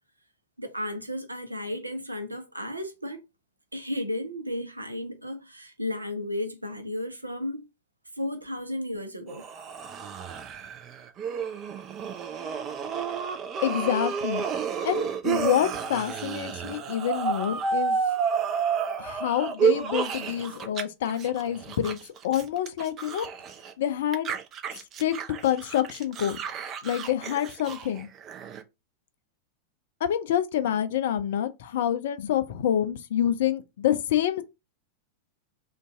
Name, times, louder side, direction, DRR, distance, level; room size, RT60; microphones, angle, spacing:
voice 1, 0.6-3.2 3.7-7.6 8.1-9.5, left 1 dB, 85° right, 0.5 m, -33 dB
sound 1, 9.3-20.8 21.1-23.7 24.1-28.6, right 6 dB, 30° right, 0.4 m, -31 dB
voice 2, 13.6-14.4 14.8-18.0 19.0-22.0 22.2-23.3 23.8-24.3 25.0-25.1 25.4-26.4 26.8-28.1 30.0-34.4, left 10 dB, 55° left, 0.3 m, -27 dB
2.5 x 2.2 x 3.6 m
figure-of-eight pair, 90°, 0 cm